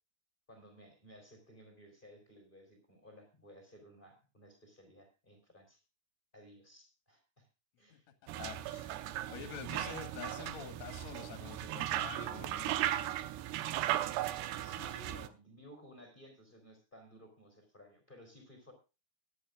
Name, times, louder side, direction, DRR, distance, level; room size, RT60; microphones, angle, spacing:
voice 1, 0.5-5.8 6.3-7.5 7.8-8.1 13.7-18.7, equal, 15° left, 4 dB, 3.0 m, -57 dB
sound 1, 8.3-15.3, right 13 dB, 80° right, 2.8 m, -37 dB
voice 2, 8.4-8.9 9.3-12.9, left 8 dB, 50° left, 8 dB, 2.6 m, -47 dB
21.5 x 10.0 x 2.4 m, 0.30 s
omnidirectional pair, 4.8 m